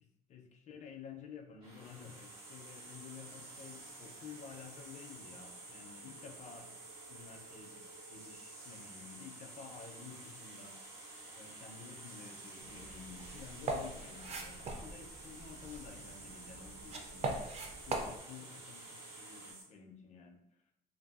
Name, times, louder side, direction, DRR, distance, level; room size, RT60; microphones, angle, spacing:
voice 1, 0.3-6.7 7.1-11.0 11.3-17.5 17.9-20.4, left 6 dB, 45° left, 3 dB, 0.5 m, -52 dB
sound 1, 1.6-19.5, right 1 dB, 85° right, 1.3 m, -57 dB
sound 2, 1.7-19.6, right 3 dB, 65° right, 0.7 m, -52 dB
sound 3, 12.6-18.2, right 2 dB, 40° right, 0.4 m, -42 dB
2.6 x 2.6 x 2.3 m, 0.86 s
cardioid pair, 110°, 17 cm